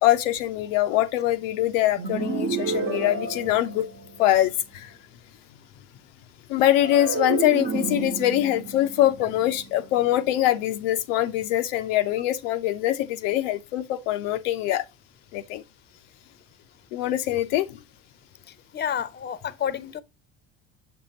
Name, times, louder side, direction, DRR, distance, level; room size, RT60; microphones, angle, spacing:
voice 1, 0.0-3.9 4.2-4.9 6.5-14.9 15.3-15.6 16.9-17.8, left 13 dB, 80° left, 0.6 m, -23 dB
sound 1, 2.0-4.4 6.8-10.1, right 4 dB, 35° right, 1.0 m, -31 dB
voice 2, 18.7-20.0, left 8 dB, 25° left, 0.7 m, -29 dB
6.7 x 5.3 x 2.7 m
hypercardioid pair, 70°, 37 cm